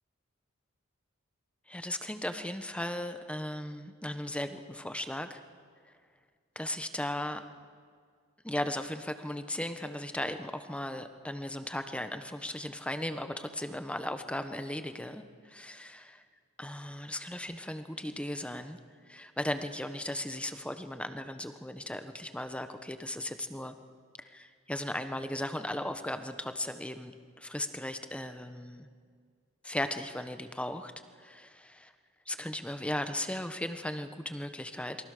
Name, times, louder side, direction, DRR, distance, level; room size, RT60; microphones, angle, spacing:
voice 1, 1.7-5.4 6.5-7.4 8.4-16.2 16.6-18.8 19.1-23.7 24.2-28.9 29.6-30.9 31.2-31.9 32.3-35.0, left 1 dB, 5° left, 8 dB, 1.2 m, -37 dB
28.0 x 23.0 x 6.7 m, 2.1 s
head